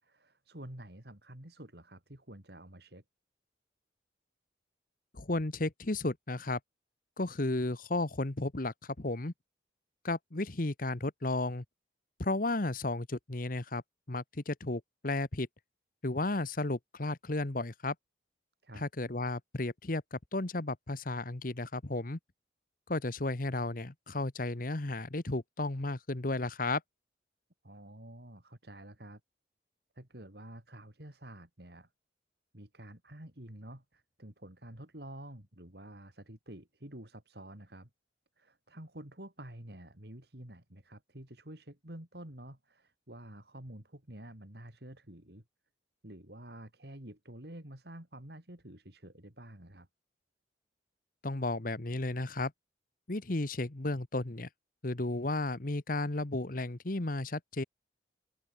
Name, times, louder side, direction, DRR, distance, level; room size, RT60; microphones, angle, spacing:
voice 1, 0.0-3.0 18.6-18.9 27.6-29.2 30.0-31.9 32.5-37.9 38.4-45.4 46.0-49.9, right 1 dB, 55° right, 3.6 m, -49 dB
voice 2, 5.1-6.6 7.2-9.3 10.0-11.6 12.2-13.8 14.1-15.5 16.0-17.9 18.7-22.2 22.9-26.8 51.2-52.5 53.1-54.5 54.8-57.6, left 2 dB, 45° left, 1.2 m, -33 dB
open air
head